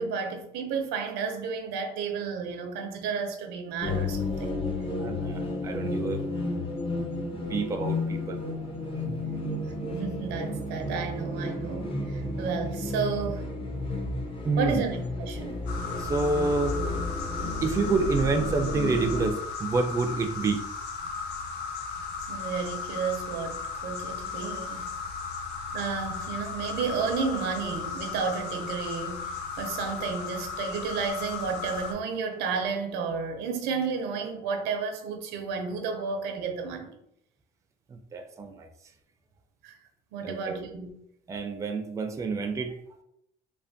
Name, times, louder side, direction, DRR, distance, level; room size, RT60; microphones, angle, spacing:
voice 1, 0.0-4.6 9.8-13.5 14.6-15.6 22.3-24.9 25.7-37.0 39.6-39.8 40.1-40.9, right 5 dB, 90° right, 0.5 m, -32 dB
sound 1, 3.8-19.3, left 2 dB, 30° left, 0.6 m, -32 dB
voice 2, 5.0-6.2 7.3-8.4 9.1-9.2 14.4-14.8 16.0-16.8 17.6-20.6 37.9-38.7 40.2-40.6 41.3-42.7, right 3 dB, 20° right, 0.3 m, -28 dB
sound 2, 15.7-31.9, left 5 dB, 80° left, 0.5 m, -36 dB
3.3 x 2.1 x 2.6 m
cardioid pair, 110°, 17 cm